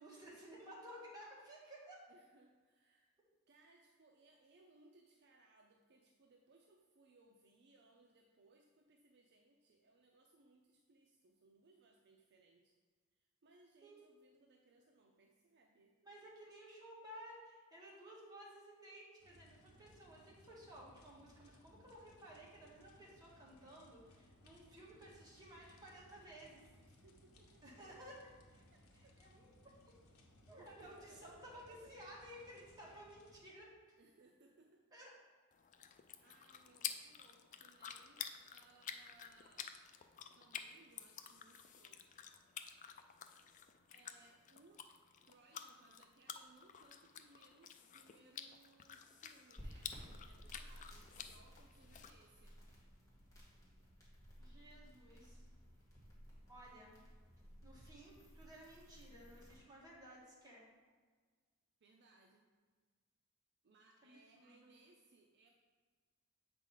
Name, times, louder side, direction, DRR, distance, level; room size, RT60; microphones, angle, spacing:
voice 1, 0.0-2.1 13.8-13.9 16.0-26.6 27.6-28.7 28.9-29.5 30.5-33.7 34.9-35.1 54.4-55.5 56.5-56.9 57.6-60.7 64.0-64.5, equal, 20° right, -6 dB, 1.7 m, -56 dB
voice 2, 2.1-3.1 3.5-12.8 13.1-16.0 26.8-27.6 28.7-29.2 30.6-31.9 34.0-34.9 36.2-39.7 40.4-42.0 42.4-42.6 43.9-44.9 45.3-52.6 61.8-62.4 63.6-65.5, right 3 dB, 50° right, 1 dB, 0.5 m, -67 dB
sound 1, 19.2-33.4, left 1 dB, 80° left, 1.0 m, -65 dB
sound 2, 35.5-52.1, left 8 dB, 35° left, 0.3 m, -51 dB
sound 3, 49.6-59.5, equal, 15° left, 1.6 m, -57 dB
7.2 x 4.9 x 3.9 m, 1.5 s
head